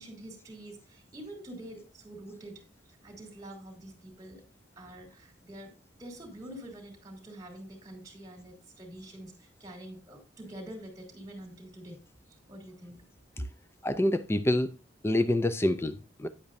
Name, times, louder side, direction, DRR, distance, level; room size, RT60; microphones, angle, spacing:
voice 1, 0.0-2.6 3.0-4.4 4.8-5.7 6.0-12.0 12.5-13.0 13.4-13.5, right 1 dB, 20° right, 3.1 m, -45 dB
voice 2, 13.8-14.7 15.0-16.3, left 1 dB, 15° left, 0.5 m, -26 dB
10.0 x 8.4 x 2.6 m
head